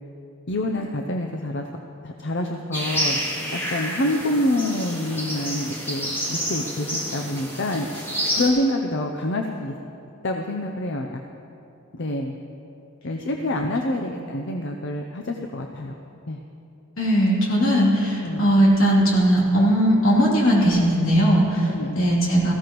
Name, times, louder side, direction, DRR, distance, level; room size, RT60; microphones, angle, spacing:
voice 1, 0.5-1.7 2.0-3.2 3.5-7.9 8.3-9.7 10.2-11.2 11.9-12.4 13.0-16.0 16.3-16.4 18.2-18.4 21.6-22.0, left 1 dB, 55° left, 3 dB, 0.6 m, -27 dB
sound 1, 2.7-8.5, equal, 10° left, 2.3 m, -29 dB
voice 2, 17.0-22.5, equal, 80° left, -4 dB, 3.0 m, -19 dB
18.0 x 15.0 x 3.1 m, 2.8 s
head